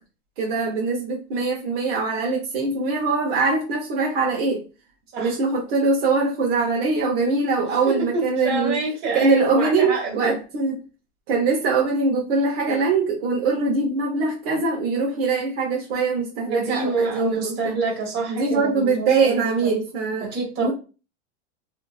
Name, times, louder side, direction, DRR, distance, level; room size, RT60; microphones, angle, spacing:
voice 1, 0.4-4.6 5.2-8.8 9.1-10.7 11.3-17.7 18.3-20.3 20.6-20.7, right 4 dB, 55° right, -2 dB, 0.9 m, -22 dB
voice 2, 7.6-10.4 16.5-19.8 20.2-20.7, right 3 dB, 30° right, -3 dB, 1.3 m, -27 dB
2.7 x 2.6 x 2.3 m, 0.33 s
supercardioid pair, 145°, 35 cm